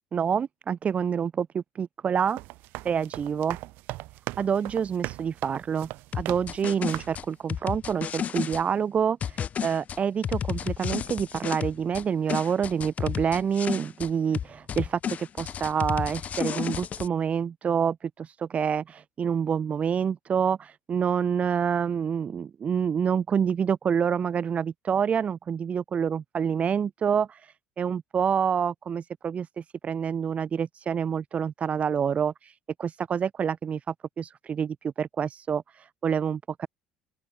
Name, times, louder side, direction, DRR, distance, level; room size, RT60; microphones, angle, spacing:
voice 1, 0.1-2.4 2.8-3.6 4.4-5.9 6.1-27.4 27.8-32.5 32.8-33.8 34.2-35.6 36.0-36.7, right 7 dB, 40° right, 2.0 m, -27 dB
sound 1, 2.2-6.6 6.9-7.3, right 20 dB, 65° right, 2.9 m, -38 dB
sound 2, 6.1-8.6 9.2-12.0 12.3-14.1 14.3-17.1, left 8 dB, 45° left, 5.6 m, -32 dB
open air
hypercardioid pair, 70°, 4 cm